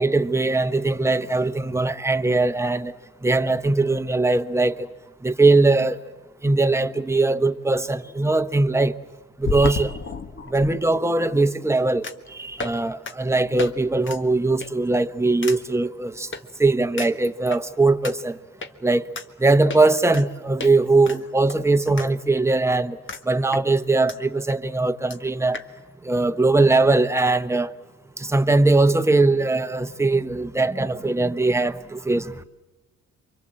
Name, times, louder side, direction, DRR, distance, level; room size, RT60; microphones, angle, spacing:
voice 1, 0.0-2.9 3.2-4.9 5.2-6.0 6.4-8.9 9.4-9.9 10.5-16.3 16.6-18.4 18.8-19.0 19.4-23.0 23.3-25.6 26.0-27.7 28.2-32.4, right 2 dB, 10° right, 1.1 m, -20 dB
sound 1, 9.4-10.7 12.0-12.3 12.6-12.8 13.1-13.2 13.6-13.7 14.0-14.2 14.6-14.9 15.4-15.6 16.3-16.4 17.0-17.6 18.0-18.1 18.6-18.7 19.2-19.3 19.7-20.3 20.6-20.7 21.1-22.1 22.4-22.5 23.1-23.2 23.5-24.2 24.5-24.6 24.8-24.9 25.1-25.2 25.5-25.7, left 4 dB, 40° left, 1.6 m, -32 dB
28.0 x 24.5 x 7.7 m
cardioid pair, 90°, 30 cm